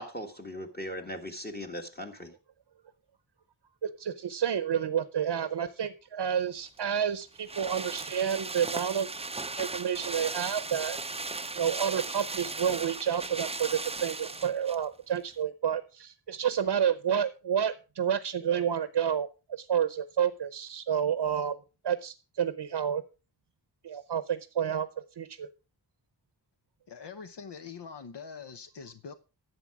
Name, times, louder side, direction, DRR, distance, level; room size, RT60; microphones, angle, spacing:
voice 1, 0.0-2.3, equal, 25° left, 1.5 m, -39 dB
voice 2, 3.8-9.1 9.6-11.0 11.5-21.6 21.8-23.0 23.8-24.9 25.2-25.5, right 8 dB, 75° right, 0.8 m, -30 dB
sound 1, 6.7-14.8 15.2-15.3, right 3 dB, 15° right, 0.5 m, -37 dB
voice 3, 26.9-29.1, left 6 dB, 75° left, 0.9 m, -44 dB
11.0 x 7.9 x 4.8 m
wide cardioid pair, 90°, 42 cm